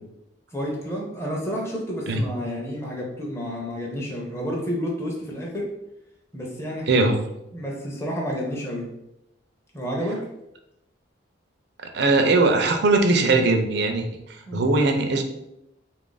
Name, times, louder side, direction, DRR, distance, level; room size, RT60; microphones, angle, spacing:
voice 1, 0.5-5.7 6.3-7.0 7.5-8.9 9.7-10.3 14.5-14.6, equal, 15° left, -2 dB, 0.6 m, -30 dB
voice 2, 6.9-7.2 11.8-14.1 14.5-15.2, right 3 dB, 60° right, 5 dB, 0.5 m, -20 dB
3.7 x 2.5 x 3.8 m, 0.85 s
head